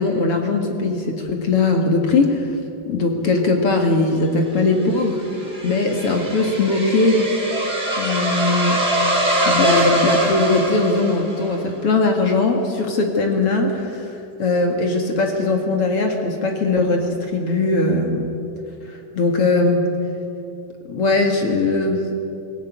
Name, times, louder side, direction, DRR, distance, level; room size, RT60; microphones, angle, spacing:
voice 1, 0.0-2.5 2.9-5.3 5.6-7.3 8.0-8.9 9.5-18.3 18.9-19.9 20.9-22.0, left 3 dB, 45° left, 3 dB, 2.2 m, -20 dB
sound 1, 4.5-11.6, right 1 dB, 15° right, 4.3 m, -22 dB
24.0 x 16.0 x 9.4 m, 2.7 s
omnidirectional pair, 4.7 m